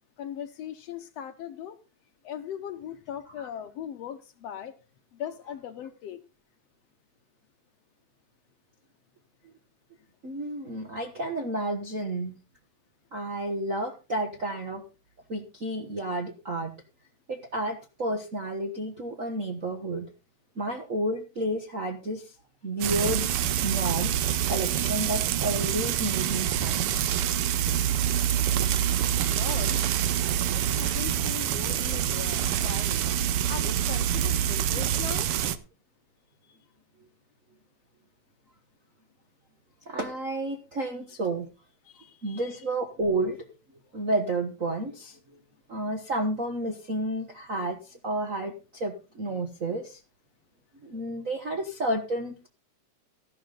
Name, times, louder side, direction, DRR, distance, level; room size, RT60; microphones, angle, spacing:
voice 1, 0.2-1.8 2.2-4.7 5.1-6.2 29.3-30.0 30.5-33.0 33.5-35.3 36.5-36.6 41.8-42.6, left 9 dB, 70° left, 9 dB, 1.7 m, -39 dB
voice 2, 10.2-12.3 13.1-14.8 15.3-16.7 17.3-20.1 20.6-22.3 22.6-23.3 23.6-24.1 24.5-26.9 39.9-41.5 42.2-43.4 43.9-45.2 45.7-50.0 50.8-52.5, right 1 dB, 50° right, 2 dB, 1.0 m, -31 dB
Frying (food), 22.8-35.6, right 10 dB, 70° right, 1.4 m, -26 dB
13.5 x 11.5 x 3.9 m, 0.31 s
omnidirectional pair, 3.4 m